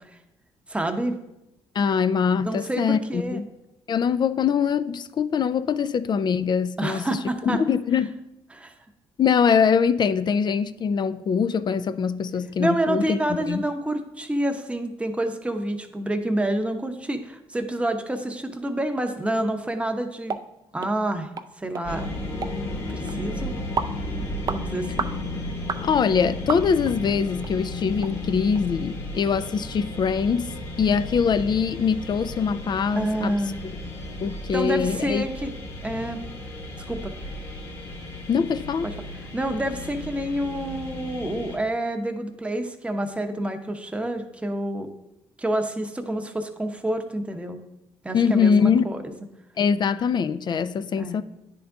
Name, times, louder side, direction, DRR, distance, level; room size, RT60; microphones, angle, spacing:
voice 1, 0.7-1.2 2.4-3.4 6.8-7.6 8.5-8.7 12.6-20.4 20.7-21.3 21.6-22.1 22.9-23.5 24.5-25.1 32.9-33.6 34.5-35.5 35.8-36.2 36.9-37.1 38.8-39.1 39.3-44.9 45.4-47.6 48.0-49.1 51.0-51.2, right 1 dB, 10° right, 0.8 m, -28 dB
voice 2, 1.8-3.4 3.9-8.2 9.2-13.6 25.8-30.5 30.8-33.4 34.2-35.2 38.3-38.9 48.1-48.9 49.6-51.2, left 6 dB, 45° left, 0.3 m, -23 dB
sound 1, 20.3-20.4 20.8-20.9 21.4-21.5 21.7-21.9 22.4-22.6 23.1-23.2 23.8-24.0 24.5-24.6 25.0-25.2 25.7-25.8 26.5-26.9 27.4-27.5 28.0-28.1 28.6-28.7, right 5 dB, 35° right, 0.4 m, -29 dB
sound 2, 21.8-41.6, left 2 dB, 80° left, 1.9 m, -34 dB
9.7 x 3.7 x 3.5 m
supercardioid pair, 75°, 11 cm